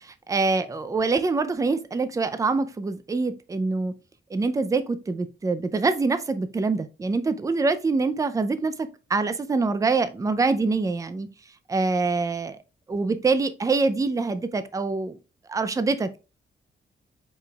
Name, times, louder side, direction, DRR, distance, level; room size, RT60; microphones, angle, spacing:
voice 1, 0.3-3.9 4.3-11.3 11.7-12.6 12.9-15.2 15.5-16.2, right 3 dB, 15° right, 0.4 m, -25 dB
4.9 x 4.8 x 2.3 m
wide cardioid pair, 140°, 20 cm